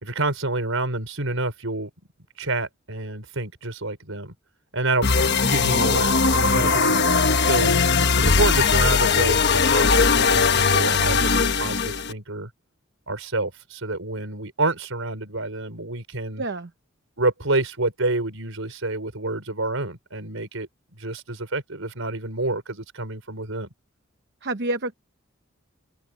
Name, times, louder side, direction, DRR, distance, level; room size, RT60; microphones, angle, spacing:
voice 1, 0.0-1.9 2.4-4.3 4.7-5.1 5.4-7.8 8.2-12.5 13.1-16.4 17.2-23.7, right 2 dB, 75° right, 5.2 m, -28 dB
sound 1, 5.0-12.1, left 4 dB, 55° left, 1.2 m, -19 dB
voice 2, 16.4-16.7 24.4-25.0, right 2 dB, 55° right, 0.9 m, -29 dB
open air
head